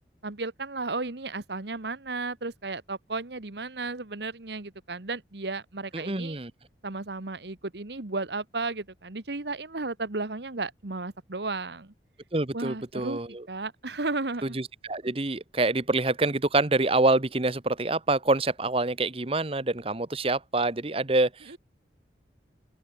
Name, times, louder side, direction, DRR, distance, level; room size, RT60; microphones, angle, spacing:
voice 1, 0.2-6.4 6.8-11.9 12.5-13.2 13.5-14.6 21.5-21.6, right 3 dB, 75° right, 1.5 m, -34 dB
voice 2, 5.9-6.5 12.3-13.4 14.5-21.6, right 2 dB, 30° right, 1.1 m, -26 dB
open air
head